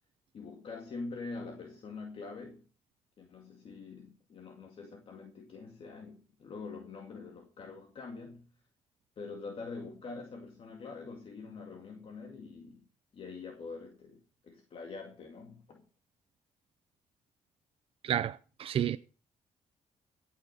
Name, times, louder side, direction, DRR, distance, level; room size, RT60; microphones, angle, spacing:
voice 1, 0.3-2.6 3.2-8.5 9.2-12.9 13.1-15.9, left 4 dB, 50° left, 2.2 m, -45 dB
voice 2, 18.0-19.0, right 10 dB, 50° right, 0.6 m, -31 dB
17.5 x 5.9 x 6.9 m
cardioid pair, 110°, 12 cm